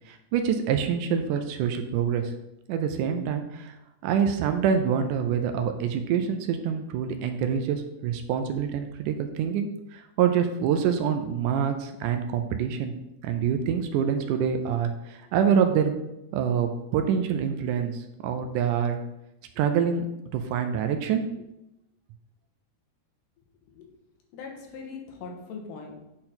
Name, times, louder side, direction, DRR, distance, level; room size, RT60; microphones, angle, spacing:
voice 1, 0.1-2.3 2.7-3.7 4.0-12.9 13.2-15.9 16.3-19.0 19.6-20.0 20.3-21.3, right 7 dB, 80° right, 6 dB, 2.0 m, -26 dB
voice 2, 24.3-26.0, left 4 dB, 80° left, 1 dB, 2.8 m, -40 dB
8.7 x 4.0 x 4.3 m, 0.90 s
omnidirectional pair, 3.8 m